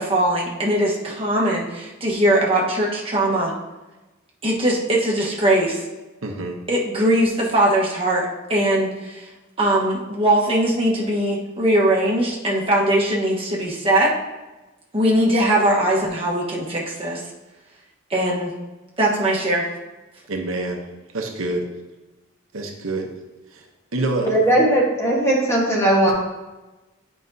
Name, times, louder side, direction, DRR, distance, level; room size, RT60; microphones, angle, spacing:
voice 1, 0.0-3.5 4.4-5.8 6.7-9.3 9.6-14.1 14.9-17.2 18.1-18.5 19.0-19.6, right 1 dB, 25° right, -4 dB, 1.2 m, -20 dB
voice 2, 6.2-6.6 20.3-20.8 21.1-21.7 22.5-23.1 23.5-23.7 23.9-24.7, right 2 dB, 70° right, 2 dB, 0.8 m, -27 dB
voice 3, 24.2-26.1, right 1 dB, 15° left, -4 dB, 1.3 m, -18 dB
9.5 x 5.0 x 2.7 m, 1.1 s
head